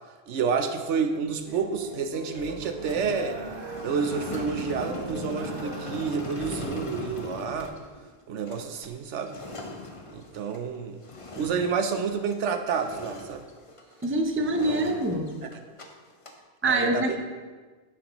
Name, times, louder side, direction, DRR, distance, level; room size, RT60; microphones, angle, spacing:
voice 1, 0.3-3.4 3.8-7.7 8.3-9.4 10.1-11.0 11.3-13.4 14.4-14.9 15.4-15.6 16.7-17.2, right 5 dB, 90° right, 7 dB, 1.1 m, -29 dB
sound 1, 1.4-6.7, right 3 dB, 50° right, 1.2 m, -39 dB
sound 2, 2.8-12.4 12.7-14.1 14.4-15.9 16.1-16.4, left 2 dB, 30° left, 0.8 m, -40 dB
voice 2, 14.0-15.3 16.6-17.2, right 1 dB, 15° right, 4 dB, 0.5 m, -25 dB
10.5 x 7.7 x 3.0 m, 1.4 s
omnidirectional pair, 1.2 m